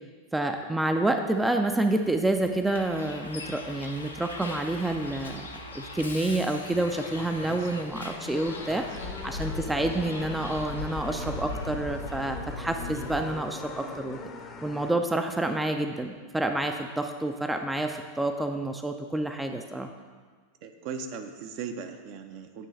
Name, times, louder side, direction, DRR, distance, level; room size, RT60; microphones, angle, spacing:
voice 1, 0.3-5.5 5.7-14.3 14.6-19.9, right 2 dB, 5° right, 5 dB, 0.4 m, -28 dB
sound 1, 1.9-14.9, left 3 dB, 30° left, 0.7 m, -44 dB
Bus, 2.7-13.2, left 3 dB, 80° left, 0.6 m, -39 dB
voice 2, 20.6-22.7, right 6 dB, 50° right, 6 dB, 0.6 m, -38 dB
9.1 x 3.1 x 6.3 m, 1.5 s
figure-of-eight pair, 90°, 0 cm